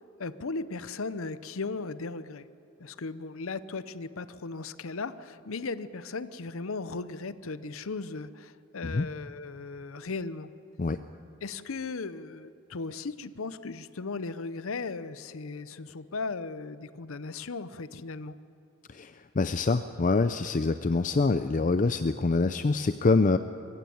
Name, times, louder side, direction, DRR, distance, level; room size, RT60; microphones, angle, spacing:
voice 1, 0.2-2.5 2.8-10.5 11.4-18.4, left 3 dB, 70° left, 14 dB, 0.7 m, -37 dB
voice 2, 18.9-23.4, left 3 dB, 35° left, 11 dB, 0.5 m, -25 dB
22.0 x 15.5 x 9.3 m, 2.7 s
head